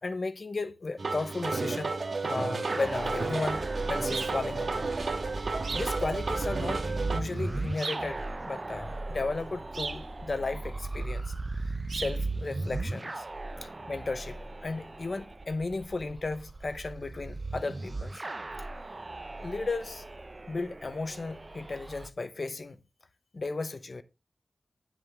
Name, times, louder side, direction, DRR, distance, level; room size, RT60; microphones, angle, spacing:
voice 1, 0.0-1.9 2.2-3.6 3.9-4.9 5.7-11.3 11.9-13.2 13.6-18.2 19.4-20.1 20.5-22.8 23.3-24.0, left 3 dB, 55° left, 1.0 m, -35 dB
sound 1, 1.0-7.2, right 3 dB, 70° right, 1.5 m, -32 dB
sound 2, 2.7-22.1, right 2 dB, 40° right, 0.7 m, -37 dB
sound 3, 4.1-4.4 5.6-6.0 7.8-8.1 9.7-10.1 11.9-12.2, right 4 dB, 90° right, 0.9 m, -36 dB
10.0 x 7.6 x 3.6 m
wide cardioid pair, 75°, 0 cm